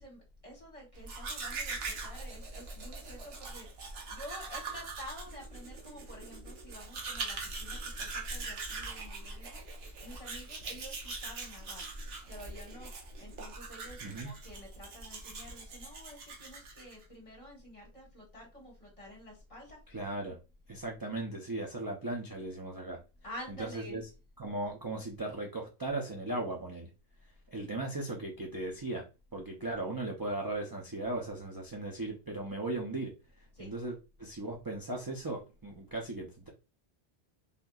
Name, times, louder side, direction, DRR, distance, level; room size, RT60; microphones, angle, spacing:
voice 1, 0.0-12.9 13.2-19.8 23.2-24.0 33.5-33.7, equal, 30° left, -2 dB, 1.3 m, -49 dB
Domestic sounds home sounds, 0.9-17.0, right 3 dB, 70° right, 1.0 m, -42 dB
voice 2, 19.9-20.4 20.7-23.0 23.5-24.0 24.4-26.9 27.5-29.0 29.3-36.5, right 2 dB, 30° right, -1 dB, 0.4 m, -37 dB
3.6 x 2.7 x 2.3 m, 0.30 s
omnidirectional pair, 1.1 m